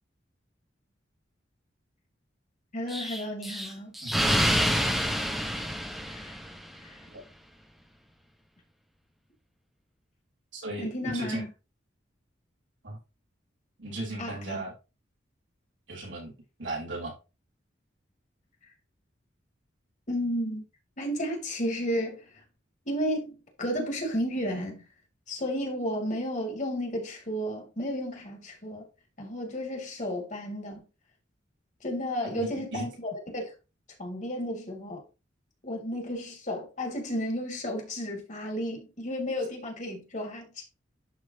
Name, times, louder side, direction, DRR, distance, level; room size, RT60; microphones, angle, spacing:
voice 1, 2.7-3.9 6.1-6.4 6.8-7.0 10.8-11.5 14.2-14.7 20.1-20.6 21.0-22.3 22.9-24.8 25.3-28.9 29.2-30.9 31.8-33.5 34.0-35.0 35.6-40.6, equal, 40° left, 2.6 m, -33 dB
Explosion, 2.9-6.8, equal, ahead, 1.2 m, -28 dB
voice 2, 4.0-4.5 7.1-7.2 10.5-11.5 12.8-13.0 13.8-14.7 15.9-16.3 16.6-17.1 32.3-32.9, right 2 dB, 75° right, 4.3 m, -36 dB
11.5 x 4.0 x 2.9 m
head